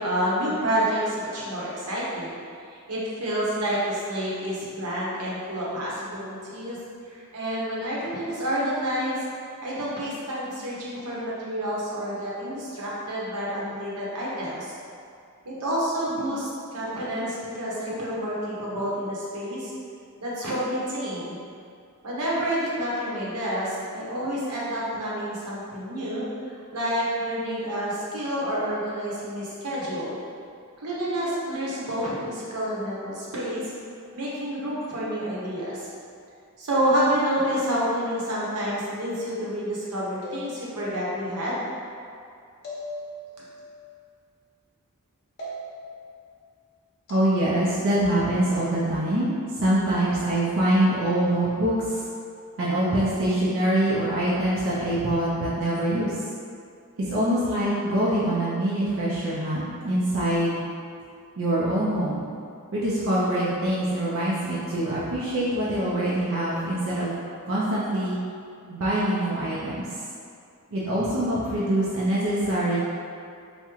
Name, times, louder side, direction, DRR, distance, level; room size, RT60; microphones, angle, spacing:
voice 1, 0.0-2.3 2.7-6.8 7.1-9.2 9.6-14.8 15.4-19.7 20.2-21.4 22.0-26.3 26.7-30.1 30.8-33.7 34.1-35.9 36.6-41.6, equal, 90° right, -7 dB, 0.8 m, -28 dB
sound 1, 40.2-41.0 42.6-43.6 45.4-46.0 47.1-47.3, left 1 dB, 45° left, 0.7 m, -38 dB
voice 2, 47.1-52.0 52.6-56.1 57.1-60.6 61.4-62.3 62.7-67.1 67.5-68.2 68.7-69.9 70.7-72.8, right 1 dB, 60° right, -8 dB, 0.5 m, -24 dB
3.5 x 2.1 x 2.9 m, 2.4 s
head